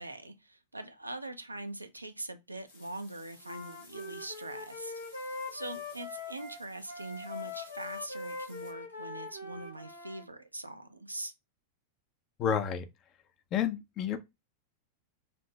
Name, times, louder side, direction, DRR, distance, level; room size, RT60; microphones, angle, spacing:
voice 1, 0.0-11.3, right 2 dB, 85° right, 0.5 m, -43 dB
sound 1, 2.7-8.7, left 3 dB, 65° left, 2.0 m, -58 dB
Wind instrument woodwind instrument, 3.4-10.3, left 3 dB, 85° left, 1.0 m, -42 dB
voice 2, 12.4-12.9 13.5-14.2, left 8 dB, 35° left, 0.5 m, -30 dB
5.1 x 2.5 x 2.2 m
figure-of-eight pair, 90°, 0 cm